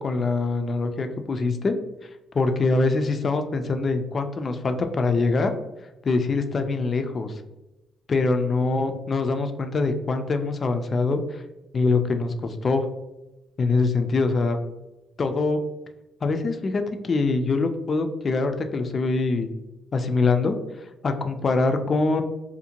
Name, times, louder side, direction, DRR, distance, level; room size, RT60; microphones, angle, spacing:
voice 1, 0.0-1.7 2.3-5.5 6.0-7.4 8.1-11.4 11.7-12.9 13.6-14.6 15.2-15.6 16.2-19.5 19.9-20.6 21.0-22.2, left 3 dB, 40° left, 7 dB, 0.3 m, -24 dB
2.5 x 2.1 x 2.7 m, 1.0 s
cardioid pair, 90°, 0 cm